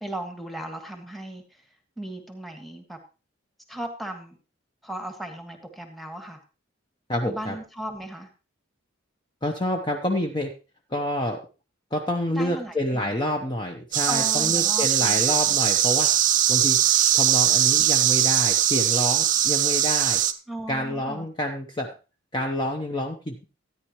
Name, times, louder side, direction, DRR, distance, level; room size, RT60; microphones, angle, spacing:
voice 1, 0.0-1.6 2.0-3.0 3.7-4.4 4.8-6.4 7.2-8.3 12.3-13.1 14.1-15.6 20.5-21.3, right 1 dB, ahead, 5 dB, 1.5 m, -36 dB
voice 2, 7.1-7.5 9.4-10.5 10.9-11.4 11.9-16.2 16.5-16.8 17.1-20.2 20.7-21.9 22.3-23.5, left 1 dB, 25° left, 3 dB, 0.8 m, -28 dB
sound 1, 13.9-20.3, right 11 dB, 40° right, 0.5 m, -21 dB
13.5 x 9.7 x 3.0 m, 0.32 s
head